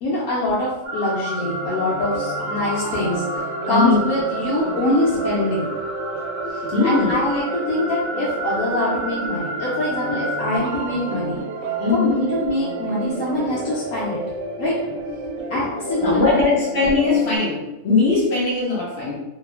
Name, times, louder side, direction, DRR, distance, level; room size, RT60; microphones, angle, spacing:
voice 1, 0.0-5.7 6.5-11.4 11.9-14.2 14.6-14.8 15.5-16.4, left 1 dB, 85° left, -7 dB, 1.1 m, -24 dB
sound 1, 0.8-10.6, right 1 dB, 45° right, 0.7 m, -31 dB
sound 2, 1.4-17.4, right 2 dB, 75° right, 0.9 m, -30 dB
voice 2, 3.7-4.0 6.7-7.2 11.8-12.2 16.0-19.2, left 4 dB, 55° left, -6 dB, 0.8 m, -20 dB
2.8 x 2.3 x 2.3 m, 0.98 s
omnidirectional pair, 1.5 m